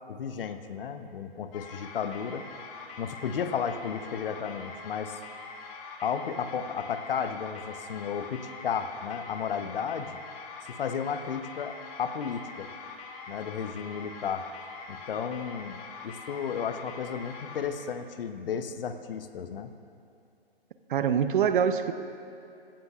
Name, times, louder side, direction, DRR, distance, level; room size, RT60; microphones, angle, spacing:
voice 1, 0.1-2.4 3.0-5.2 6.0-10.2 10.7-12.7 13.3-14.4 14.9-19.7, left 7 dB, 65° left, 9 dB, 0.9 m, -33 dB
sound 1, 1.5-17.6, left 4 dB, 35° left, 1.4 m, -44 dB
voice 2, 20.9-21.9, right 8 dB, 55° right, 10 dB, 0.7 m, -24 dB
16.5 x 14.5 x 2.4 m, 2.7 s
hypercardioid pair, 130°, 30 cm